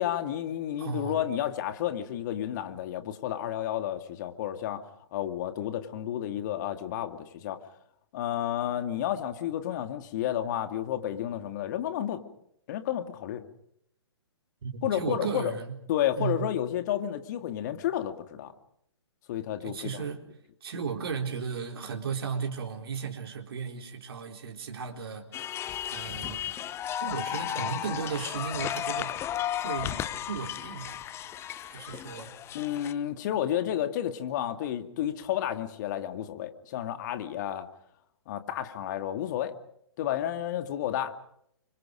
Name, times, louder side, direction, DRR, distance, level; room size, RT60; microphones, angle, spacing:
voice 1, 0.0-4.8 5.1-7.6 8.1-12.2 12.7-13.4 14.8-15.5 15.9-18.5 19.3-20.0 32.5-37.7 38.3-39.5 40.0-41.1, left 11 dB, 40° left, 9 dB, 2.4 m, -31 dB
voice 2, 0.8-1.2 14.6-15.8 16.2-16.5 19.6-20.2 20.6-25.4 25.9-26.5 27.0-29.2 29.6-31.1 31.6-32.3, right 6 dB, 55° right, 3 dB, 4.1 m, -35 dB
sound 1, 25.3-32.9, left 11 dB, 15° left, 1.0 m, -34 dB
30.0 x 25.5 x 5.2 m, 0.72 s
figure-of-eight pair, 125°, 14 cm